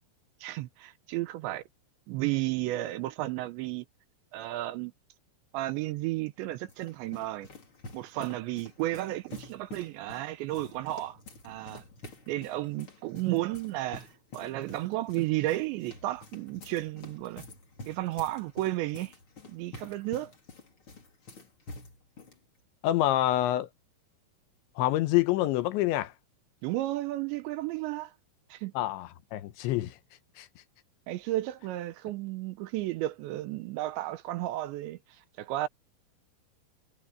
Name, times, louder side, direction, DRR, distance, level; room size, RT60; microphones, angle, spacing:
voice 1, 0.4-1.6 2.1-3.9 4.3-4.9 5.5-7.5 7.9-11.2 11.4-11.8 12.3-14.1 14.3-17.4 17.9-19.1 19.5-20.3 26.6-28.1 28.5-28.7 31.1-35.0 35.4-35.7, right 16 dB, 80° right, 2.9 m, -33 dB
sound 1, 6.3-22.4, left 2 dB, 30° left, 3.9 m, -49 dB
voice 2, 22.8-23.7 24.8-26.1 28.8-30.0 30.4-30.5, left 14 dB, 80° left, 3.1 m, -27 dB
omnidirectional pair, 5.5 m